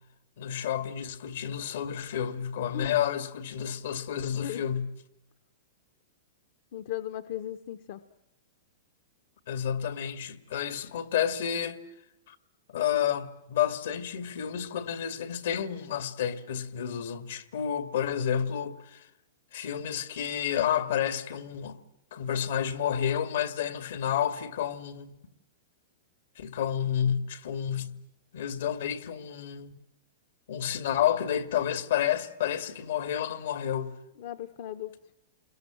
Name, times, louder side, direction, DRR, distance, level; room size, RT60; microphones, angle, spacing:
voice 1, 0.4-4.9 9.5-11.8 12.3-12.4 12.7-19.1 19.5-21.8 22.1-25.1 26.4-28.0 28.3-29.7 30.5-33.9, left 9 dB, 75° left, 2.3 m, -30 dB
voice 2, 6.7-8.0 34.2-35.0, left 12 dB, 55° left, 1.1 m, -37 dB
28.5 x 21.5 x 7.6 m
hypercardioid pair, 150°, 0 cm